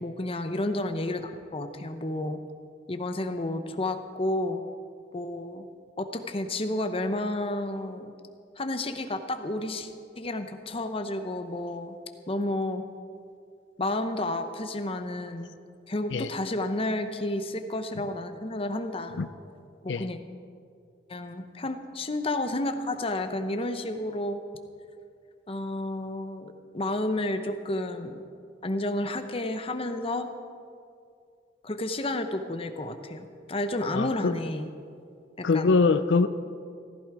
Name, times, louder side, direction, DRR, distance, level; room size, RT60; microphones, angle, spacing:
voice 1, 0.0-2.4 2.9-4.6 5.1-5.6 6.0-8.1 8.6-9.9 10.2-12.0 12.3-12.8 13.8-15.5 15.9-19.2 19.8-20.2 21.1-24.4 25.5-28.2 28.6-30.3 31.6-34.7 35.4-35.7, left 1 dB, 30° left, 7 dB, 0.8 m, -31 dB
voice 2, 33.9-34.3 35.4-36.3, left 4 dB, 90° left, 12 dB, 0.5 m, -23 dB
15.0 x 14.5 x 4.8 m, 2.3 s
head